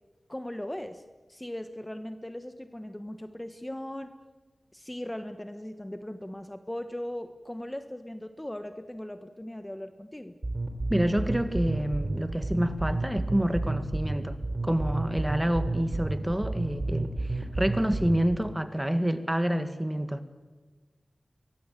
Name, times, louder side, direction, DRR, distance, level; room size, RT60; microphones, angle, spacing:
voice 1, 0.3-1.0 1.3-4.1 4.7-10.3, left 1 dB, 15° left, 1.3 m, -38 dB
sound 1, 10.4-18.4, right 2 dB, 40° right, 3.3 m, -31 dB
voice 2, 10.9-14.4 14.6-20.2, right 1 dB, 10° right, 1.8 m, -28 dB
23.5 x 20.0 x 9.1 m
wide cardioid pair, 60°, 0 cm